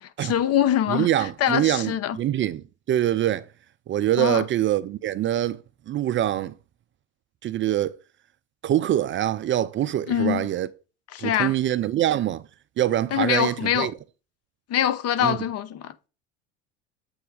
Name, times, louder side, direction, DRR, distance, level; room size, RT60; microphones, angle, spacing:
voice 1, 0.0-2.2 4.2-4.4 10.1-10.5 11.1-11.5 13.1-13.9 14.7-16.1, left 10 dB, 45° left, 0.8 m, -24 dB
voice 2, 0.9-3.5 3.9-5.6 5.9-6.5 7.4-8.0 8.6-10.7 11.2-12.4 12.8-13.9 15.2-15.4, right 12 dB, 35° right, 0.5 m, -24 dB
7.9 x 3.3 x 4.7 m
hypercardioid pair, 85°, 36 cm